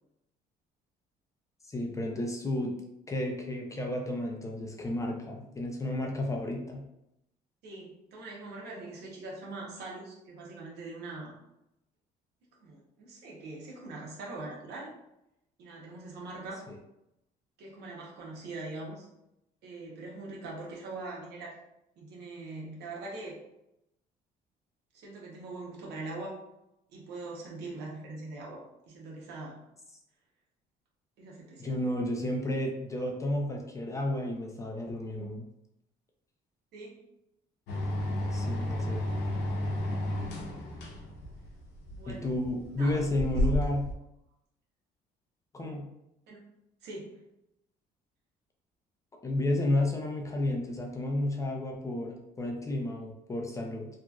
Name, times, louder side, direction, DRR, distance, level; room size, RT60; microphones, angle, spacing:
voice 1, 1.6-2.7 3.1-6.8 16.7-16.8 31.6-35.5 38.3-39.0 42.1-43.9 45.5-45.9 49.2-53.9, left 1 dB, 20° left, 1 dB, 0.5 m, -32 dB
voice 2, 7.6-11.3 12.6-14.9 15.6-16.6 17.6-19.1 19.6-21.6 22.0-23.4 24.9-26.3 26.9-29.6 31.2-31.8 36.7-37.0 40.5-40.9 41.9-42.3 42.7-43.1 43.5-43.6 46.3-46.4 46.8-47.2, right 2 dB, 80° right, -3 dB, 1.0 m, -42 dB
sound 1, 37.7-43.9, left 1 dB, 85° left, 0.6 m, -32 dB
2.9 x 2.4 x 2.3 m, 0.85 s
cardioid pair, 110°, 17 cm